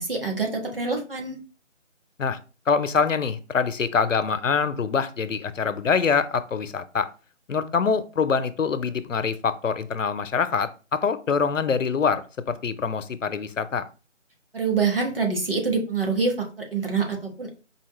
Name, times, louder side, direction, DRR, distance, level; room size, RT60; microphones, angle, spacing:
voice 1, 0.0-1.4 14.5-17.5, right 4 dB, 45° right, 1 dB, 1.4 m, -26 dB
voice 2, 2.7-7.1 7.5-13.8, left 5 dB, 80° left, 13 dB, 0.6 m, -24 dB
4.7 x 2.8 x 3.0 m, 0.34 s
figure-of-eight pair, 175°, 38 cm